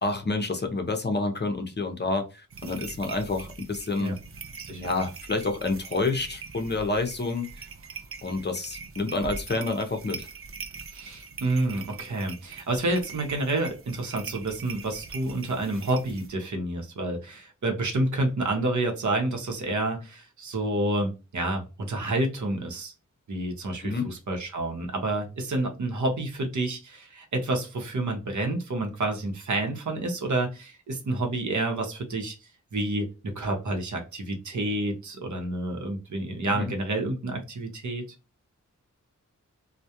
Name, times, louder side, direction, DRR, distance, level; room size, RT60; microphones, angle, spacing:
voice 1, 0.0-4.2 4.7-7.7 8.2-10.3 23.8-24.1 36.4-36.7, left 3 dB, 35° left, 5 dB, 0.6 m, -29 dB
sound 1, 2.5-16.3, right 5 dB, 45° right, 0.4 m, -42 dB
voice 2, 10.9-22.9 23.3-38.1, right 2 dB, 65° right, 3 dB, 0.8 m, -29 dB
2.2 x 2.1 x 2.8 m, 0.29 s
wide cardioid pair, 70°, 31 cm